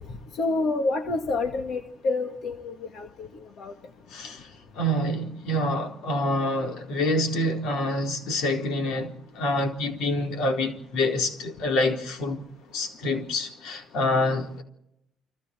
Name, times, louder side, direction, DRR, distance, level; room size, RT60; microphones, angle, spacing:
voice 1, 0.3-3.3 3.6-3.7, left 3 dB, 50° left, 2.1 m, -28 dB
voice 2, 4.1-4.5 4.7-12.5 12.7-14.6, left 1 dB, 70° left, 4.1 m, -27 dB
30.0 x 24.5 x 4.6 m
cardioid pair, 155°, 0 cm